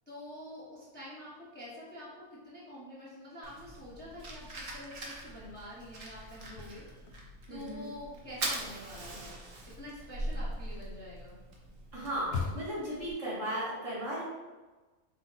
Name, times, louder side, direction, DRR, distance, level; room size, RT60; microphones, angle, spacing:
voice 1, 0.1-6.8 7.5-9.4 9.8-11.4, left 1 dB, 10° left, -8 dB, 0.8 m, -47 dB
Fire, 3.4-13.1, right 2 dB, 55° right, 0.9 m, -42 dB
sound 1, 6.5-7.6 7.9-13.0, left 5 dB, 70° left, 0.9 m, -42 dB
voice 2, 7.5-7.9 11.9-14.2, right 1 dB, 90° right, -8 dB, 2.0 m, -36 dB
4.8 x 2.1 x 4.0 m, 1.2 s
omnidirectional pair, 1.3 m